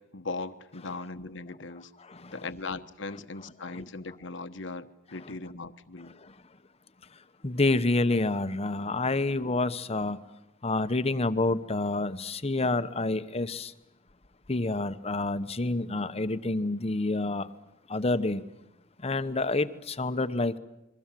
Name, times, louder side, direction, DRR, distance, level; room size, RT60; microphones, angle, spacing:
voice 1, 0.1-1.9 2.3-6.1, left 3 dB, 65° left, 1.2 m, -38 dB
voice 2, 2.0-2.3 3.7-3.8 6.2-6.3 7.4-10.2 10.6-13.7 14.5-17.5 17.9-18.4 19.0-20.6, left 2 dB, 30° left, 1.0 m, -28 dB
28.5 x 22.5 x 7.6 m
head